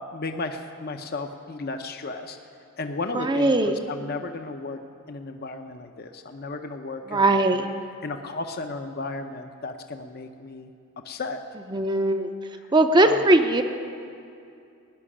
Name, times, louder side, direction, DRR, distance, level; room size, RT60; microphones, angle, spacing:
voice 1, 0.0-2.4 2.8-4.8 5.1-7.6 8.0-10.7 11.0-11.4 13.0-13.2, left 3 dB, 45° left, 6 dB, 0.7 m, -34 dB
voice 2, 3.1-3.8 7.1-7.7 11.7-12.3 12.7-13.6, right 2 dB, 20° right, 6 dB, 0.6 m, -20 dB
17.5 x 6.2 x 9.9 m, 2.5 s
head